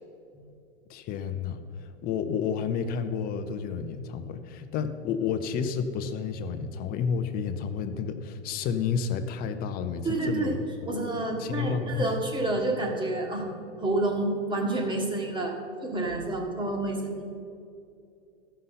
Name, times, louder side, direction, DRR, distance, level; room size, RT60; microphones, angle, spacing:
voice 1, 0.9-10.6 11.4-12.1, left 6 dB, 25° left, 9 dB, 0.7 m, -31 dB
voice 2, 10.0-10.5 10.9-13.5 13.8-15.6 15.8-17.3, right 2 dB, 15° right, 2 dB, 1.4 m, -29 dB
13.5 x 5.7 x 5.7 m, 2.6 s
hypercardioid pair, 110°, 35 cm